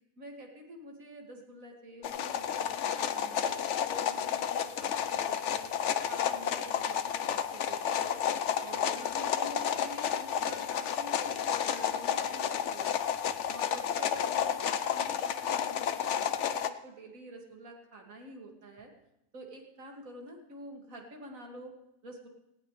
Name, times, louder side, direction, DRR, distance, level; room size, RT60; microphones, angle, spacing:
voice 1, 0.2-5.7 6.1-8.2 8.6-13.0 13.5-18.9 19.3-21.7 22.0-22.3, right 1 dB, 60° right, 1 dB, 2.7 m, -47 dB
sound 1, 2.0-16.7, left 8 dB, 60° left, 0.9 m, -31 dB
18.5 x 17.5 x 3.3 m, 0.86 s
omnidirectional pair, 1.6 m